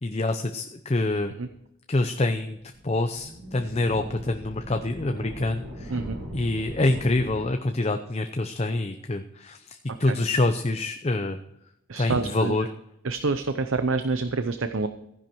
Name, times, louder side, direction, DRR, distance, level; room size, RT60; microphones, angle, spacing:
voice 1, 0.0-1.3 1.9-2.6 2.8-5.9 6.3-11.4 12.0-12.7, left 2 dB, 30° left, 7 dB, 0.6 m, -26 dB
sound 1, 2.7-7.5, equal, 90° right, 5.1 m, -40 dB
voice 2, 11.9-12.6 13.0-14.9, right 3 dB, 75° right, 9 dB, 0.7 m, -27 dB
15.0 x 10.5 x 4.6 m, 0.81 s
head